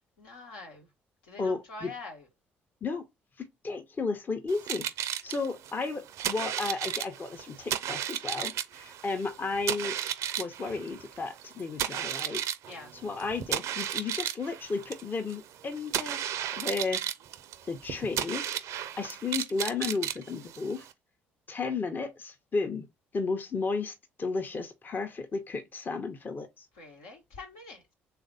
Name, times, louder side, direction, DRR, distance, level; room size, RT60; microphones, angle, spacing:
voice 1, 0.2-0.9 1.3-2.2 12.7-12.9 26.8-27.9, left 3 dB, 80° left, 1.1 m, -45 dB
voice 2, 1.4-1.9 2.8-3.0 3.4-4.9 5.2-10.0 10.4-12.4 12.7-16.2 16.5-17.0 17.6-20.9 21.5-22.9 23.1-26.7, left 4 dB, 35° left, 0.7 m, -33 dB
sound 1, 4.5-20.9, right 11 dB, 65° right, 0.5 m, -34 dB
3.3 x 2.5 x 3.9 m
hypercardioid pair, 55°, 6 cm